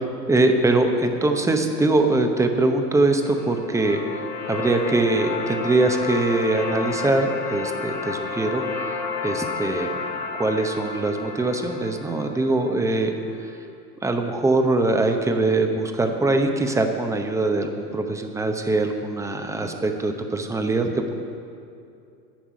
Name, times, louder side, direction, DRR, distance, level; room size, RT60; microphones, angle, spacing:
voice 1, 0.0-4.0 4.5-8.9 9.2-9.9 10.1-13.1 14.0-21.1, right 2 dB, 5° right, 5 dB, 0.7 m, -22 dB
sound 1, 3.1-13.2, left 4 dB, 90° left, 1.7 m, -31 dB
10.5 x 7.1 x 9.3 m, 2.6 s
hypercardioid pair, 120°, 49 cm